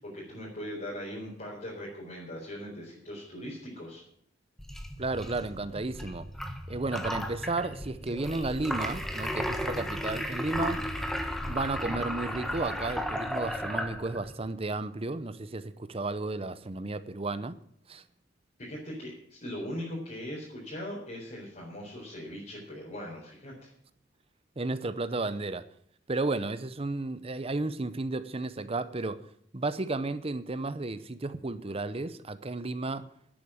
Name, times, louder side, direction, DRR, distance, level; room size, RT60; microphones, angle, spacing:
voice 1, 0.0-4.0 18.6-23.7, equal, 45° left, -6 dB, 4.2 m, -40 dB
sound 1, 4.6-14.3, equal, ahead, 1.2 m, -34 dB
voice 2, 5.0-6.3 6.7-10.8 11.5-17.6 17.9-18.0 24.6-25.6 26.1-29.2 29.5-33.1, right 2 dB, 30° right, 13 dB, 0.7 m, -33 dB
11.0 x 8.5 x 8.8 m, 0.67 s
head